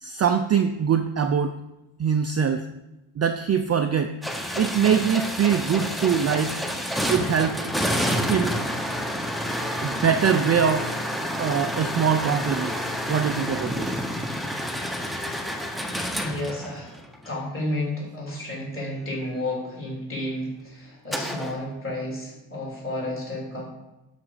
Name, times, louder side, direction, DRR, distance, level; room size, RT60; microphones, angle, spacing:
voice 1, 0.0-1.5 2.0-2.7 3.2-4.1 4.6-6.6 7.1-7.6 8.3-8.6 9.8-11.0 11.4-13.9, right 7 dB, 35° right, 7 dB, 0.4 m, -23 dB
sound 1, 4.2-17.3 21.1-21.6, equal, ahead, 0.7 m, -29 dB
voice 2, 16.2-16.9 17.2-23.7, left 1 dB, 25° left, -4 dB, 3.6 m, -31 dB
11.5 x 4.9 x 4.9 m, 0.97 s
cardioid pair, 145°, 48 cm